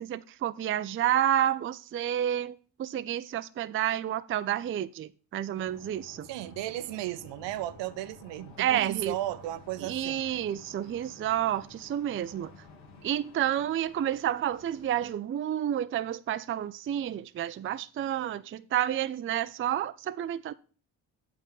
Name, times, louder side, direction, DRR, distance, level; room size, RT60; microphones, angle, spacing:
voice 1, 0.0-6.3 8.6-9.2 9.8-12.5 13.0-20.5, right 11 dB, 25° right, 0.4 m, -30 dB
sound 1, 5.5-15.1, left 3 dB, 65° left, 1.7 m, -52 dB
voice 2, 6.3-10.3, right 14 dB, 60° right, 0.7 m, -35 dB
8.4 x 3.8 x 6.3 m
hypercardioid pair, 45°, 48 cm